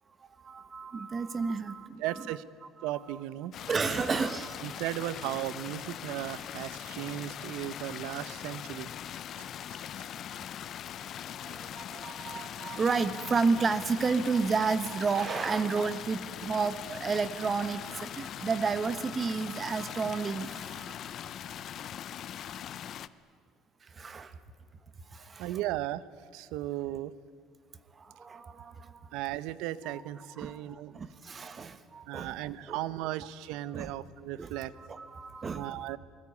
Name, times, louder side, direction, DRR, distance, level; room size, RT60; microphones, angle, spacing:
voice 1, 0.2-2.3 2.8-3.2 3.7-4.8 11.4-21.4 23.8-24.4 25.1-25.6 27.9-29.1 29.8-30.0 30.4-32.3 32.7-32.8 33.6-33.9 34.4-36.0, right 4 dB, 25° right, 13 dB, 1.3 m, -32 dB
voice 2, 2.0-2.4 2.8-3.5 4.6-8.9 9.4-10.1 11.5-11.6 11.9-12.0 25.4-26.0 26.3-27.1 29.1-31.0 32.1-34.7 35.5-36.0, right 14 dB, 80° right, 17 dB, 0.9 m, -36 dB
sound 1, 3.5-23.1, left 10 dB, 45° left, 0.7 m, -41 dB
27.5 x 20.0 x 9.6 m, 2.1 s
cardioid pair, 145°, 0 cm